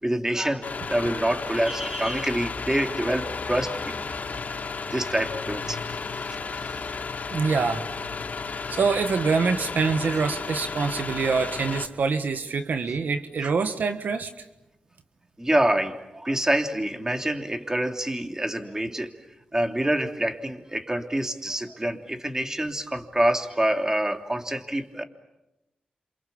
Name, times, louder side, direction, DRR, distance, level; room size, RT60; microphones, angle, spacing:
voice 1, 0.0-4.1 4.3-4.4 4.9-5.8 6.6-6.7 15.4-19.1 19.5-25.0, right 1 dB, 20° right, 5 dB, 3.3 m, -26 dB
sound 1, 0.6-11.9, left 4 dB, 65° left, 2.8 m, -33 dB
voice 2, 7.3-7.9 8.7-14.5, right 4 dB, 75° right, 8 dB, 1.5 m, -25 dB
28.0 x 27.5 x 7.2 m, 0.95 s
cardioid pair, 50°, 3 cm